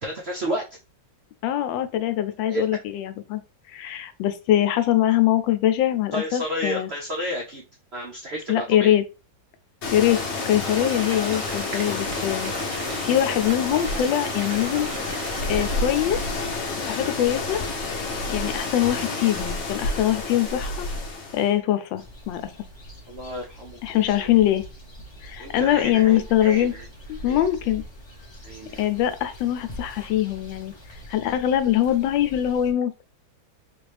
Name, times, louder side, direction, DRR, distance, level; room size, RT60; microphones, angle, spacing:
voice 1, 0.0-0.6 2.5-2.7 6.1-7.6 7.9-8.9 23.1-24.3 25.4-26.9 27.2-27.4 28.4-28.8, equal, 80° right, 0.5 m, -31 dB
voice 2, 1.4-3.4 3.7-6.9 8.5-9.0 9.9-10.2 10.5-14.9 15.5-16.2 16.9-17.6 18.3-20.9 21.3-22.5 23.8-24.6 25.2-26.7 27.1-27.8 28.8-30.7 31.1-32.9, left 12 dB, 85° left, 1.3 m, -23 dB
sound 1, 9.8-21.5, left 3 dB, 55° left, 0.8 m, -29 dB
sound 2, 10.6-15.8, right 5 dB, 60° right, 0.9 m, -38 dB
sound 3, 22.0-32.7, equal, 35° left, 0.4 m, -43 dB
3.9 x 2.5 x 3.2 m
omnidirectional pair, 2.0 m